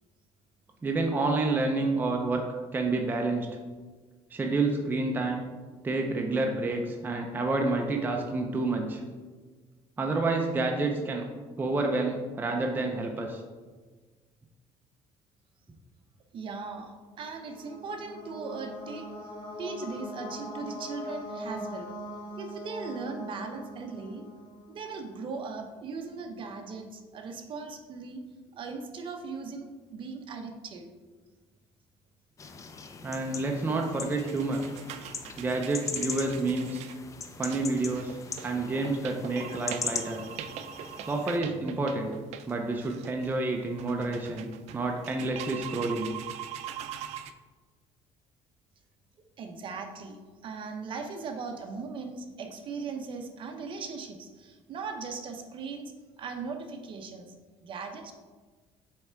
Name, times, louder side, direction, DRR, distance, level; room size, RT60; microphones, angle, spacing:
voice 1, 0.8-3.5 4.3-5.5 5.8-9.0 10.0-11.3 11.6-13.4 33.0-34.6 35.4-36.9 37.4-38.2 38.4-40.2 41.1-42.1 42.5-46.1, right 3 dB, 15° right, 2 dB, 0.6 m, -29 dB
voice 2, 16.3-19.3 19.6-21.9 22.4-24.2 24.7-28.2 28.6-30.9 49.4-50.2 50.4-57.3 57.6-58.1, right 4 dB, 45° right, 4 dB, 0.8 m, -38 dB
sound 1, 17.1-24.9, left 1 dB, 50° left, 2.1 m, -41 dB
sound 2, 32.4-41.4, left 5 dB, 25° left, 0.5 m, -40 dB
sound 3, 33.7-47.3, right 10 dB, 70° right, 0.4 m, -42 dB
7.7 x 3.4 x 4.5 m, 1.4 s
cardioid pair, 135°, 12 cm